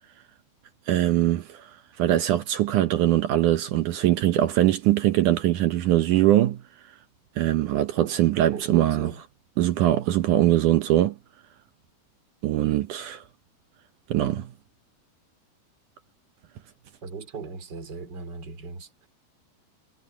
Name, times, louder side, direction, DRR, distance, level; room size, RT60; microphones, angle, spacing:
voice 1, 0.9-1.7 2.0-6.6 7.4-9.1 9.6-11.2 12.4-13.2 14.1-14.5, right 13 dB, 75° right, 1.8 m, -22 dB
voice 2, 8.5-9.2 17.0-19.1, right 5 dB, 25° right, 3.8 m, -38 dB
omnidirectional pair, 4.8 m